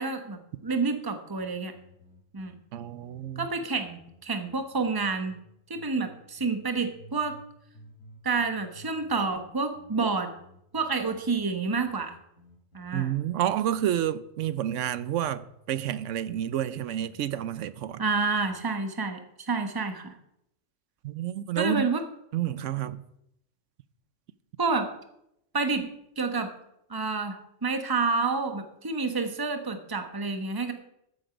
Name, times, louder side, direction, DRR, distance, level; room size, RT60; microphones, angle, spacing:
voice 1, 0.0-1.7 2.3-2.5 3.4-5.4 5.7-7.4 8.2-10.3 10.7-12.1 12.7-13.1 18.0-19.2 19.5-20.1 21.6-22.0 24.6-24.9 25.5-25.9 26.2-26.5 26.9-30.7, right 4 dB, 20° right, 1.1 m, -29 dB
sound 1, 1.4-5.4 5.7-7.5 7.7-13.4 13.7-15.5 15.7-18.6, equal, 90° left, 3.9 m, -53 dB
voice 2, 2.7-3.5 12.9-18.0 21.0-21.9 22.3-23.0, right 11 dB, 75° right, 0.9 m, -29 dB
14.0 x 7.9 x 5.2 m
omnidirectional pair, 1.3 m